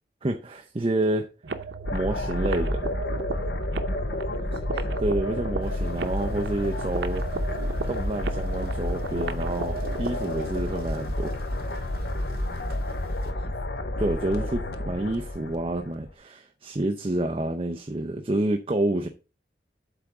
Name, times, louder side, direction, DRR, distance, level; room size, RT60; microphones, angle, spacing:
voice 1, 0.2-1.3 1.9-2.8 5.0-7.2 7.9-11.3 14.0-19.1, right 1 dB, 30° right, 0.6 m, -28 dB
sound 1, 1.4-10.5, right 4 dB, 90° right, 0.8 m, -36 dB
sound 2, 1.8-16.1, left 1 dB, 70° left, 0.9 m, -30 dB
voice 2, 4.2-5.2 13.2-14.6, right 1 dB, 35° left, 2.0 m, -48 dB
sound 3, 5.6-13.3, right 1 dB, 55° right, 1.7 m, -49 dB
8.2 x 3.6 x 6.0 m
head